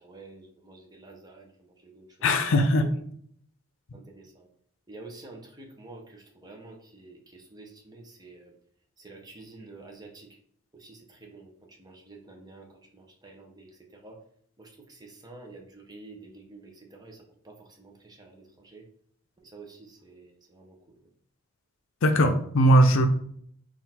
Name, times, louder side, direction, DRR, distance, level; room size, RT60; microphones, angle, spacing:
voice 1, 0.0-1.5 1.8-2.4 2.8-2.9 3.9-4.5 4.9-8.5 9.0-10.3 10.7-11.5 11.8-14.2 14.6-18.8 19.4-20.8, right 3 dB, 20° right, 2 dB, 0.6 m, -49 dB
voice 2, 2.2-2.9 22.0-23.1, equal, 60° left, 7 dB, 0.5 m, -20 dB
3.9 x 2.5 x 4.2 m, 0.64 s
head